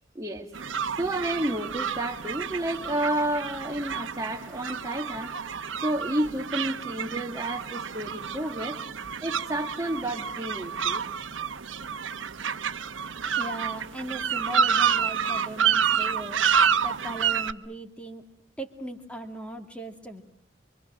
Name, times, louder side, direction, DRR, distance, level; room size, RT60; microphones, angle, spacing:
voice 1, 0.2-5.3 5.8-8.8 9.2-11.0, right 1 dB, 15° right, 1 dB, 1.8 m, -31 dB
sound 1, 0.5-17.5, right 7 dB, 80° right, 1.0 m, -29 dB
voice 2, 13.4-16.4 16.8-18.2 18.6-20.2, right 1 dB, 5° left, 5 dB, 2.4 m, -38 dB
28.0 x 24.5 x 6.4 m, 0.71 s
head